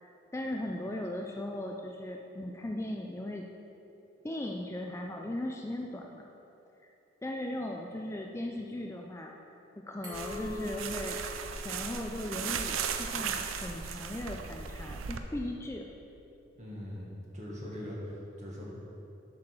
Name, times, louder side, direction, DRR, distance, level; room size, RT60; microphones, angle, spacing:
voice 1, 0.0-3.5 4.2-6.2 6.8-6.9 7.2-9.3 9.7-11.2 11.5-15.9, left 1 dB, 15° left, 1 dB, 0.3 m, -38 dB
Glass, 10.0-12.8, left 2 dB, 20° right, 1.9 m, -44 dB
sound 1, 10.1-15.2, right 6 dB, 90° right, 0.5 m, -36 dB
voice 2, 16.6-18.7, left 1 dB, 40° right, -5 dB, 1.7 m, -41 dB
7.3 x 4.8 x 6.0 m, 2.8 s
head